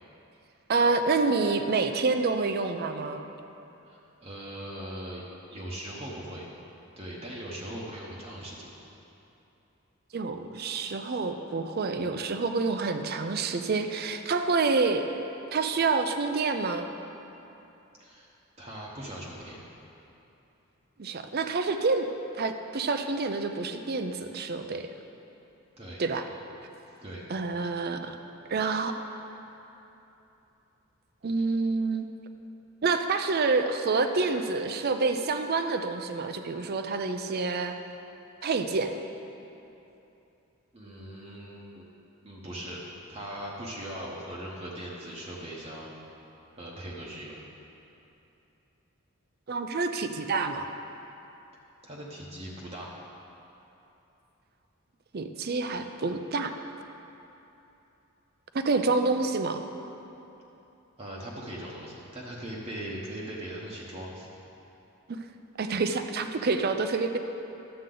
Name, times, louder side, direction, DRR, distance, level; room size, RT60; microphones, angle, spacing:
voice 1, 0.7-3.2 10.1-15.0 15.5-16.9 21.0-22.1 22.3-24.9 26.0-26.3 27.3-28.2 28.5-28.9 29.2-29.3 31.2-32.0 32.8-37.8 38.4-38.9 49.5-50.7 55.1-56.5 58.6-59.6 65.1-65.2 65.6-67.2, right 4 dB, 45° right, 8 dB, 0.5 m, -27 dB
voice 2, 3.8-5.2 5.5-6.5 7.0-8.7 18.0-18.3 18.6-19.6 25.8-26.0 27.0-27.2 31.4-31.5 40.7-41.8 42.2-42.8 43.1-46.0 46.6-47.4 51.8-52.9 61.0-64.3, right 1 dB, 30° right, -5 dB, 0.9 m, -40 dB
11.5 x 7.9 x 3.8 m, 3.0 s
head